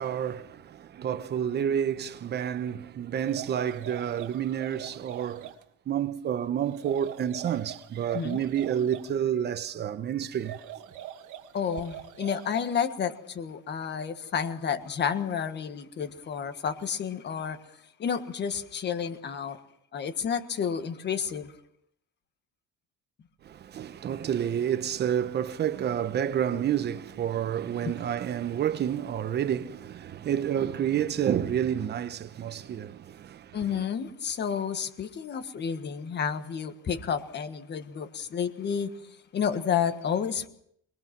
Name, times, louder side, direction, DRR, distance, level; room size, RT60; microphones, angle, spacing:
voice 1, 0.0-5.5 5.9-10.6 23.4-33.8, right 9 dB, 35° right, 0.9 m, -29 dB
sound 1, 3.2-5.6 6.7-9.1 10.3-12.8, right 11 dB, 70° right, 1.5 m, -43 dB
voice 2, 11.5-17.6 18.0-19.6 19.9-21.5 27.8-27.9 33.5-38.9 39.3-40.5, left 7 dB, 35° left, 1.5 m, -30 dB
23.5 x 21.5 x 6.0 m
cardioid pair, 175°, 31 cm